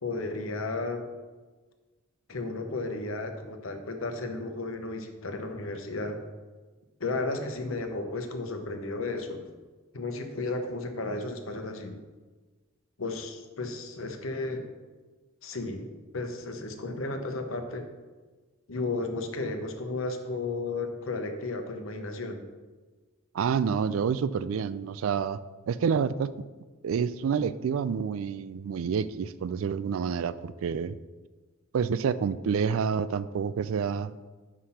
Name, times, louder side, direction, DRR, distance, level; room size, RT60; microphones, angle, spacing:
voice 1, 0.0-1.1 2.3-6.2 7.0-9.4 9.9-12.0 13.0-14.7 15.4-15.9 16.1-17.8 18.7-22.4, left 2 dB, 75° left, 5 dB, 0.9 m, -33 dB
voice 2, 23.3-25.4 25.7-26.3 26.8-31.0 31.7-34.1, right 6 dB, 75° right, 15 dB, 0.3 m, -28 dB
5.8 x 5.0 x 5.6 m, 1.3 s
head